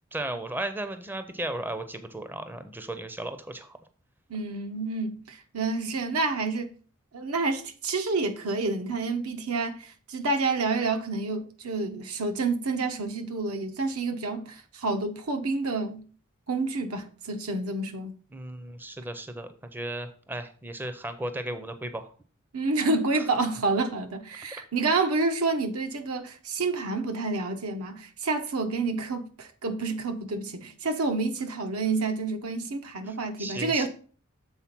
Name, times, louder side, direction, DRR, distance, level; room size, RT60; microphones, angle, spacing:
voice 1, 0.1-3.8 18.3-22.1 23.1-23.3 33.1-33.9, right 1 dB, 10° right, 0.5 m, -35 dB
voice 2, 4.3-6.7 7.1-16.0 16.5-18.2 22.5-33.9, right 3 dB, 85° right, 1.0 m, -29 dB
7.0 x 4.0 x 5.9 m
head